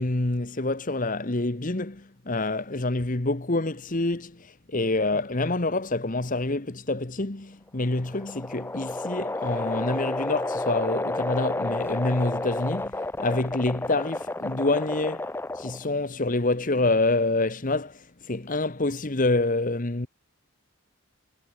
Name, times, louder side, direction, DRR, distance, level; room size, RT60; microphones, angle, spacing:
voice 1, 0.0-15.3 15.5-20.1, left 2 dB, 40° left, 1.3 m, -27 dB
sound 1, 7.7-15.9, left 2 dB, 10° left, 0.5 m, -31 dB
head